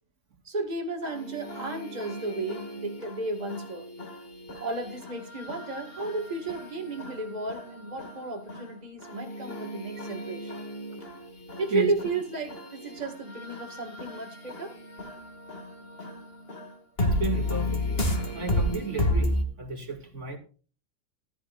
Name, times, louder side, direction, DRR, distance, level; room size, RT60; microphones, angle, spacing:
voice 1, 0.4-3.9 4.6-10.7 11.6-14.8, right 3 dB, 30° right, 3 dB, 2.3 m, -33 dB
sound 1, 1.0-19.4, left 1 dB, 40° left, 2.7 m, -33 dB
voice 2, 17.0-18.0 18.3-20.4, right 4 dB, 55° right, 2 dB, 2.5 m, -33 dB
16.0 x 13.0 x 2.6 m, 0.38 s
omnidirectional pair, 1.5 m